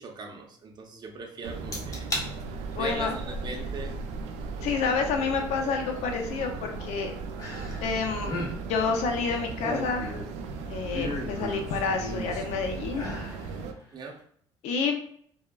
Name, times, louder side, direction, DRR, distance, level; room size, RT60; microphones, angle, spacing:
voice 1, 0.0-2.1 2.7-4.0 13.9-14.2, right 4 dB, 40° right, 1 dB, 0.6 m, -39 dB
sound 1, 1.4-13.7, right 4 dB, 90° right, 0.4 m, -37 dB
sound 2, 1.7-2.3 2.7-3.1 4.7-4.8 7.4-7.9 8.2-8.5 9.3-10.4 10.9-12.4 12.9-13.4 13.8-13.9, left 1 dB, 30° left, 1.0 m, -35 dB
voice 2, 2.8-3.1 4.6-7.1 7.8-8.3 8.7-10.2 10.7-13.5 14.6-15.0, left 5 dB, 75° left, 4 dB, 0.5 m, -29 dB
3.4 x 2.0 x 2.2 m, 0.62 s
cardioid pair, 100°, 11 cm